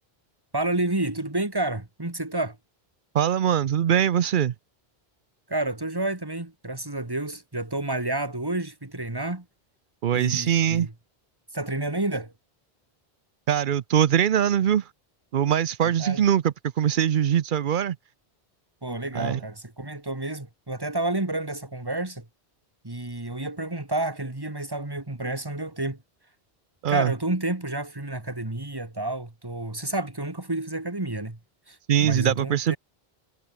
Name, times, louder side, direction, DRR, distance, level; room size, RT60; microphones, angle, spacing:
voice 1, 0.5-2.6 5.5-9.5 10.1-10.9 11.5-12.3 15.8-16.2 18.8-22.3 22.8-26.0 26.9-31.4 31.7-32.8, right 2 dB, 20° right, 2.2 m, -30 dB
voice 2, 3.1-4.5 10.0-10.9 13.5-14.8 15.3-18.0 19.1-19.4 26.8-27.1 31.9-32.7, right 9 dB, 55° right, 0.7 m, -22 dB
omnidirectional pair, 1.1 m